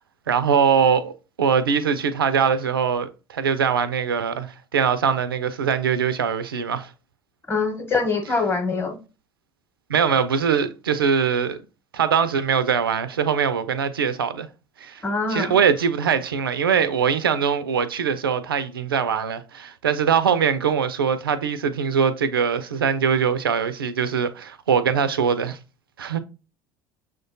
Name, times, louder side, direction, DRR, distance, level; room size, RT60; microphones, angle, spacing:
voice 1, 0.3-1.1 1.4-6.9 9.9-11.6 11.9-14.5 14.8-15.0 15.3-25.6 26.0-26.2, right 7 dB, 80° right, 0.4 m, -22 dB
voice 2, 7.5-9.0 15.0-15.6, left 4 dB, 20° left, 0.9 m, -24 dB
6.2 x 2.2 x 2.6 m
figure-of-eight pair, 65°, 12 cm